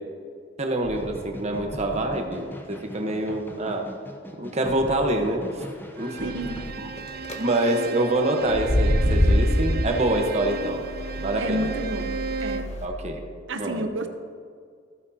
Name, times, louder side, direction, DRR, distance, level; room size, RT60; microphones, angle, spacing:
voice 1, 0.6-3.9 4.4-5.7 6.0-6.3 6.8-6.9 7.4-10.9 11.2-11.7 12.8-13.2 13.6-13.9, right 1 dB, 35° right, 3 dB, 1.1 m, -26 dB
sound 1, 0.8-6.7, equal, 10° left, 0.8 m, -40 dB
Bowed string instrument, 6.0-12.8, right 5 dB, 55° right, 0.5 m, -35 dB
voice 2, 6.2-6.6 11.4-12.7 13.5-14.1, right 1 dB, 90° right, 7 dB, 0.8 m, -30 dB
sound 2, 7.0-7.3 8.4-12.8, left 1 dB, 40° left, 1.1 m, -25 dB
15.0 x 9.0 x 2.9 m, 2.1 s
head